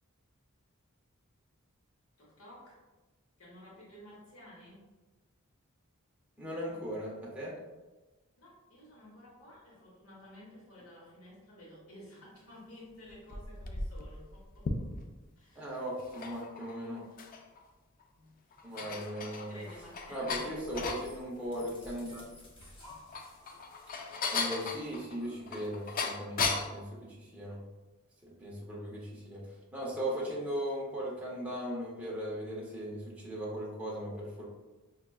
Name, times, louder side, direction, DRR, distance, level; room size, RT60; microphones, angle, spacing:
voice 1, 2.2-2.8 3.4-4.8 8.4-14.7 15.4-15.7 18.1-20.5, left 1 dB, 70° left, -5 dB, 1.0 m, -53 dB
voice 2, 6.4-7.5 15.6-17.0 18.6-19.6 20.1-22.2 24.3-27.6 28.2-34.5, equal, 5° right, -6 dB, 0.6 m, -38 dB
sound 1, 13.1-15.3 15.9-17.6 18.0-18.1 18.5-21.1 22.8-26.8, left 4 dB, 40° left, 0.3 m, -36 dB
sound 2, 19.3-26.3, left 1 dB, 25° left, 0.9 m, -55 dB
5.2 x 2.3 x 2.2 m, 1.2 s
head